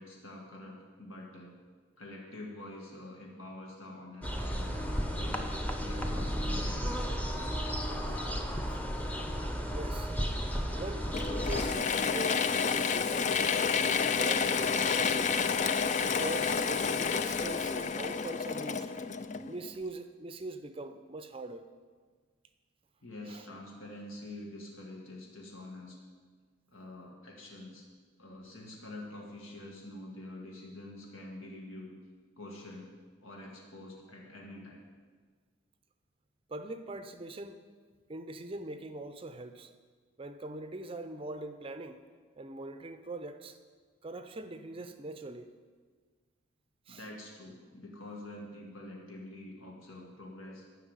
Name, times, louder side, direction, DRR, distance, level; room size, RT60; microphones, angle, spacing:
voice 1, 0.0-1.6 2.0-6.9 23.0-26.0 26.7-27.9 28.2-31.9 32.4-33.0 33.2-34.8 46.9-50.7, left 1 dB, 80° left, -1 dB, 1.7 m, -46 dB
sound 1, 4.2-11.7, equal, 5° left, 0.8 m, -33 dB
voice 2, 9.6-10.1 10.7-15.4 16.0-18.9 19.4-21.6 23.3-23.5 36.5-37.6 38.1-39.7 40.2-42.0 42.4-43.6 44.0-45.5 46.9-47.0, right 2 dB, 25° right, 10 dB, 0.5 m, -42 dB
Mechanisms / Drill, 11.1-19.7, left 6 dB, 35° left, 0.4 m, -30 dB
11.0 x 6.0 x 8.8 m, 1.5 s
head